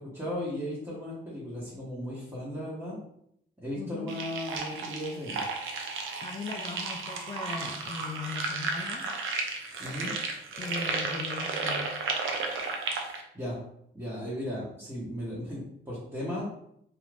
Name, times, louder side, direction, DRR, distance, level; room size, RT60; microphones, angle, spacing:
voice 1, 0.0-3.0 3.6-5.4 9.8-10.1 13.3-13.6 13.9-16.5, left 1 dB, 15° right, -9 dB, 1.1 m, -36 dB
voice 2, 3.7-4.1 6.2-9.1 10.6-11.9, left 3 dB, 25° left, 5 dB, 0.4 m, -39 dB
sound 1, 4.1-13.2, right 3 dB, 75° right, 0.5 m, -33 dB
2.5 x 2.4 x 3.2 m, 0.73 s
cardioid pair, 80°, 21 cm